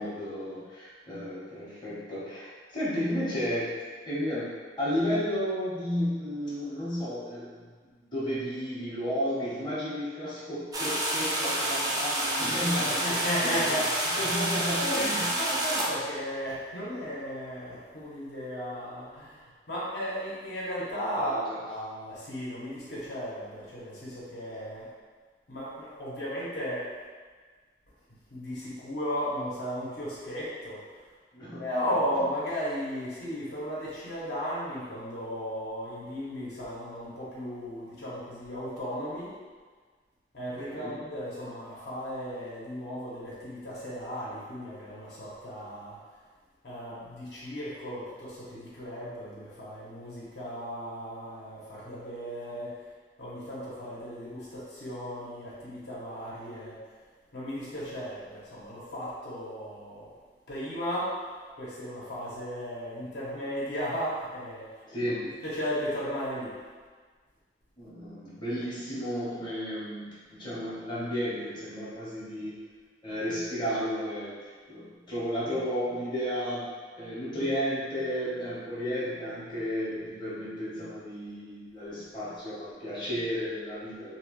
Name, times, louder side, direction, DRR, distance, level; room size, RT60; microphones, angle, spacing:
voice 1, 0.0-7.7 8.1-13.7 14.2-15.3 21.2-21.6 31.3-31.7 40.7-40.9 64.9-65.2 67.8-72.6 73.0-74.4 74.7-76.7 77.0-84.2, equal, 25° left, -10 dB, 0.8 m, -33 dB
sound 1, 10.7-15.9, right 1 dB, 20° right, 0.4 m, -29 dB
voice 2, 13.0-13.9 14.2-14.3 14.7-19.4 19.7-24.9 25.5-26.9 28.3-30.8 31.6-39.3 40.3-46.0 46.6-52.8 53.2-56.7 57.3-60.1 60.5-61.2 61.6-65.1 65.4-66.6, equal, 65° left, -8 dB, 0.8 m, -35 dB
2.8 x 2.2 x 3.0 m, 1.5 s
head